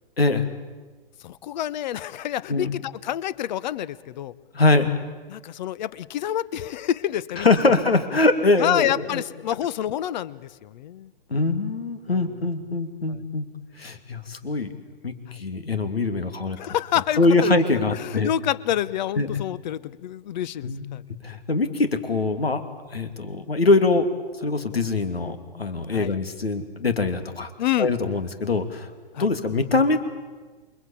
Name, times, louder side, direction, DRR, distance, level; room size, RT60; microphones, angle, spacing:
voice 1, 0.2-0.5 2.5-2.7 4.5-5.1 7.4-9.2 11.3-13.5 13.8-14.7 15.0-16.6 17.2-18.3 19.2-19.3 20.6-20.8 21.1-22.6 22.9-24.1 24.4-27.5 27.8-28.9 29.2-30.0, left 3 dB, 90° left, 8 dB, 2.9 m, -23 dB
voice 2, 1.2-4.3 5.3-7.5 8.6-11.1 12.1-12.3 13.1-13.2 15.3-15.4 16.6-17.5 18.0-21.0 25.9-26.1 27.6-27.9 29.1-29.3, left 11 dB, 50° left, 19 dB, 1.0 m, -28 dB
28.0 x 22.5 x 8.6 m, 1.3 s
hypercardioid pair, 125°, 29 cm